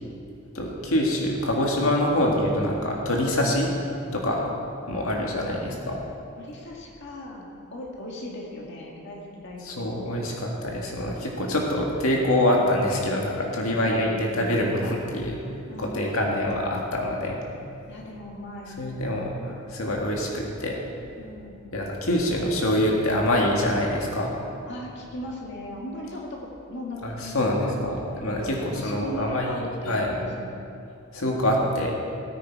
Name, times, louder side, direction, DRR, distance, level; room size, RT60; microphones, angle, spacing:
voice 1, 0.5-3.7 4.1-4.4 4.9-6.0 9.6-17.4 18.8-20.8 21.7-24.3 27.0-30.1 31.1-31.9, left 1 dB, 85° left, -1 dB, 1.9 m, -25 dB
voice 2, 5.5-5.8 6.4-9.9 13.5-14.3 15.7-16.6 17.9-18.8 21.2-21.6 24.7-26.4 26.7-27.7 28.0-30.5 31.5-31.6, left 1 dB, 60° left, -2 dB, 1.8 m, -38 dB
17.5 x 9.6 x 4.7 m, 2.6 s
head